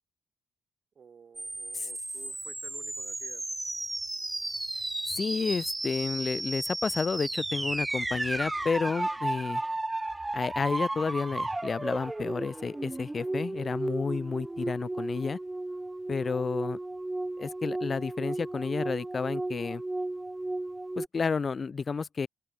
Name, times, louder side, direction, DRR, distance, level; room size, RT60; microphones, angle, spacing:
voice 1, 1.0-3.4, right 6 dB, 50° right, 3.7 m, -52 dB
sound 1, 1.4-21.1, right 2 dB, 15° right, 0.7 m, -34 dB
voice 2, 5.1-9.6 10.3-15.4 16.1-16.8 17.4-19.8 21.0-22.3, left 5 dB, 45° left, 0.3 m, -31 dB
open air
supercardioid pair, 55°, 0 cm